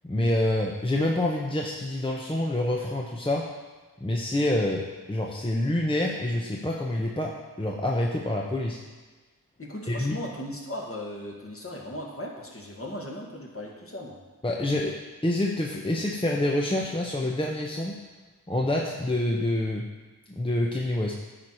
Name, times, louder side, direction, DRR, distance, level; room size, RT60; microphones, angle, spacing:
voice 1, 0.0-3.4 4.0-8.8 9.9-10.1 14.4-15.0 15.2-17.9 18.5-19.8 20.3-21.1, left 1 dB, 15° left, -2 dB, 0.9 m, -27 dB
voice 2, 9.6-14.2, left 1 dB, 35° left, -2 dB, 1.9 m, -37 dB
10.0 x 4.8 x 4.5 m, 1.3 s
cardioid pair, 45°, 36 cm